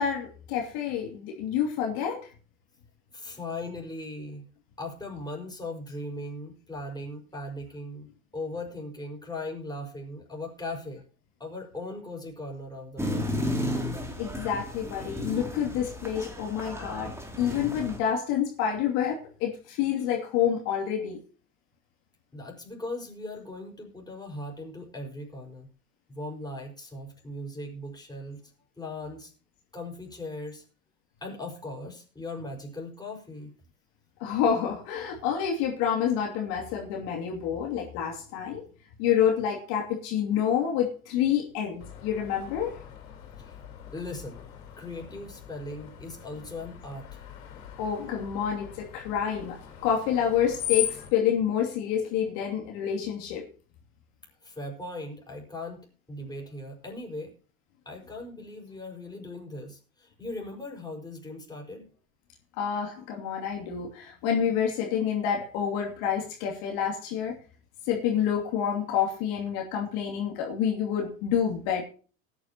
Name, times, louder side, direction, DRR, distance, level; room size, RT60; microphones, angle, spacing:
voice 1, 0.0-2.2 14.2-21.2 34.2-38.6 39.0-42.7 47.8-49.6 49.8-53.4 62.6-67.3 67.9-71.8, left 8 dB, 60° left, 0 dB, 2.8 m, -28 dB
voice 2, 3.1-4.5 4.8-8.1 8.3-11.0 11.4-13.4 22.3-25.7 26.1-29.3 29.7-30.6 31.2-33.5 43.4-43.6 43.9-44.5 44.8-47.2 54.4-57.3 57.9-61.9, left 2 dB, 10° left, 0 dB, 5.5 m, -39 dB
sound 1, 13.0-18.0, left 1 dB, 5° right, 2.9 m, -33 dB
Screech, 41.8-51.1, left 11 dB, 75° left, 4.2 m, -39 dB
18.5 x 9.7 x 3.0 m, 0.38 s
hypercardioid pair, 85°, 42 cm